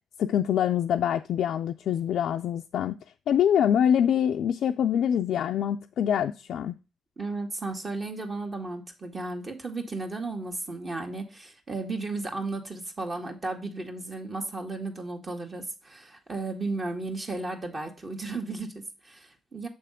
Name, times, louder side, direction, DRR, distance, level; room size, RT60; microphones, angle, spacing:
voice 1, 0.2-3.0 3.3-6.8, left 9 dB, 70° left, 0.3 m, -25 dB
voice 2, 7.2-19.7, right 3 dB, 40° right, 1.7 m, -34 dB
6.7 x 3.4 x 4.9 m
supercardioid pair, 55°, 0 cm